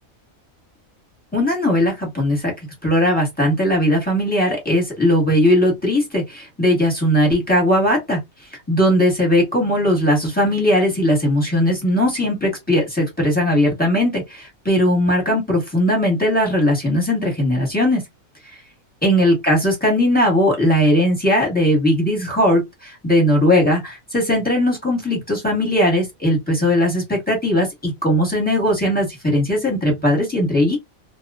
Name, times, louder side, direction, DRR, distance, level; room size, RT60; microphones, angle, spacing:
voice 1, 1.3-2.5 2.8-8.2 8.7-18.0 19.0-30.8, left 1 dB, 5° left, 1.0 m, -18 dB
2.3 x 2.3 x 2.3 m
omnidirectional pair, 1.4 m